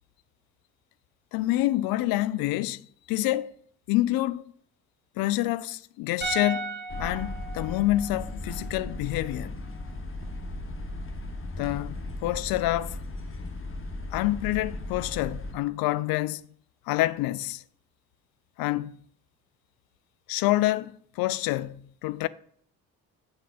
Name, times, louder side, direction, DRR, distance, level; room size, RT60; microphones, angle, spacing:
voice 1, 1.3-2.8 3.1-3.5 3.9-4.4 5.2-9.5 11.6-12.0 12.2-13.0 14.1-16.4 16.9-17.6 18.6-18.9 20.3-22.3, left 16 dB, 50° left, 0.5 m, -27 dB
sound 1, 6.2-9.4 9.7-9.8, right 3 dB, 20° right, 3.5 m, -37 dB
sound 2, 6.9-15.6, left 2 dB, 25° left, 1.3 m, -37 dB
7.4 x 5.6 x 5.3 m
figure-of-eight pair, 40°, 46 cm